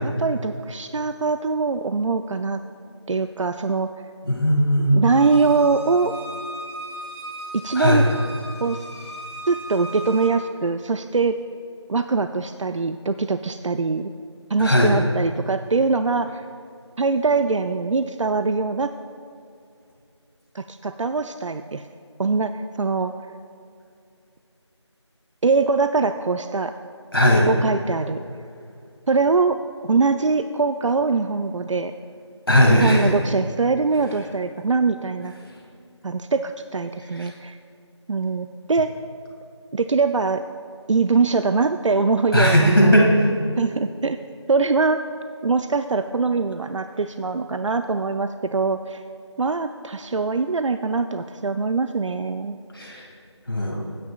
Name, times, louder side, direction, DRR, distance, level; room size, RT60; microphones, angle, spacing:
voice 1, 0.0-2.6 3.1-3.9 4.9-6.1 7.5-8.0 8.6-8.9 9.5-11.4 11.9-14.1 14.5-16.4 17.0-18.9 20.5-21.9 22.2-23.1 25.4-26.7 27.5-28.2 29.1-29.6 29.8-31.9 32.7-35.3 36.0-37.6 38.1-38.9 39.7-40.4 40.9-43.0 43.6-44.2 44.5-45.0 45.4-49.0 49.4-52.6, right 4 dB, 85° right, 9 dB, 0.4 m, -22 dB
voice 2, 4.2-5.1 7.8-8.1 14.6-15.0 27.1-27.5 32.5-33.1 37.2-37.3 42.3-43.3 52.7-53.0 53.5-53.8, equal, 50° left, -2 dB, 2.1 m, -17 dB
Bowed string instrument, 5.1-10.3, equal, 55° right, 2.5 m, -37 dB
14.5 x 9.4 x 2.4 m, 2.4 s
figure-of-eight pair, 175°, 15 cm